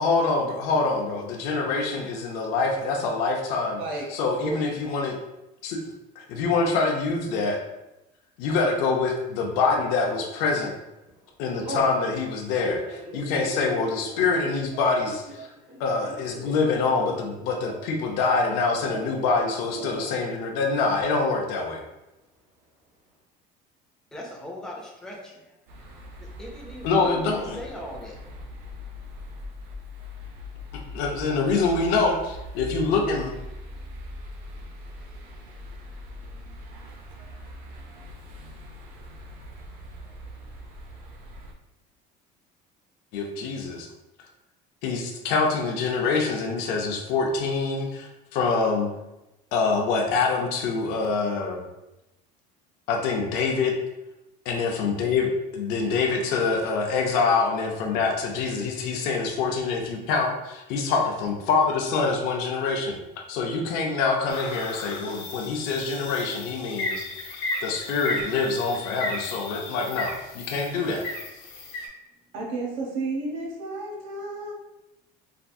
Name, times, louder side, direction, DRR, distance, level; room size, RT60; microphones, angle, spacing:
voice 1, 0.0-3.8 4.1-5.2 5.6-5.8 6.2-7.6 8.4-10.7 11.4-15.5 15.8-21.8 26.8-27.6 30.9-33.3 43.1-43.9 44.8-48.9 49.5-51.6 52.9-53.8 54.5-63.0 63.3-71.0, left 4 dB, 60° left, 1 dB, 0.5 m, -25 dB
voice 2, 3.8-4.7 72.3-74.5, right 2 dB, 65° right, -2 dB, 1.0 m, -32 dB
Telephone, 9.4-9.9 10.5-10.8 11.1-11.9 12.5-18.0 18.3-19.4 19.7-20.1 20.4-20.5 20.8-21.4, equal, 90° right, 1.3 m, -39 dB
voice 3, 24.1-25.4 26.4-28.2, left 1 dB, 5° left, -2 dB, 0.4 m, -39 dB
sound 1, 25.7-41.5, left 1 dB, 50° right, 0.5 m, -41 dB
sound 2, 64.3-71.9, left 2 dB, 90° left, 0.8 m, -35 dB
3.3 x 2.3 x 2.6 m, 0.96 s
cardioid pair, 180°, 18 cm